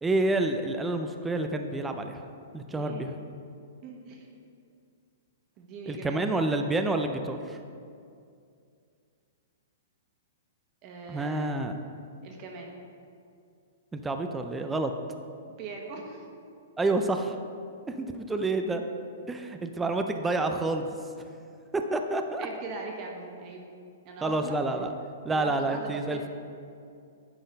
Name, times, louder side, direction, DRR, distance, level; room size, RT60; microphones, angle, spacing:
voice 1, 0.0-2.2 2.5-3.1 5.9-7.6 11.1-11.8 13.9-14.9 16.8-17.2 17.9-18.8 19.3-21.0 21.7-22.5 24.2-24.9 25.2-26.3, right 2 dB, 10° right, 5 dB, 0.4 m, -28 dB
voice 2, 2.7-3.1 3.8-4.2 5.6-6.2 10.8-11.6 12.2-12.7 15.5-16.2 22.4-23.6 24.0-24.7 25.3-26.3, right 4 dB, 35° right, 0 dB, 1.4 m, -40 dB
10.0 x 4.0 x 5.2 m, 2.4 s
hypercardioid pair, 140°, 0 cm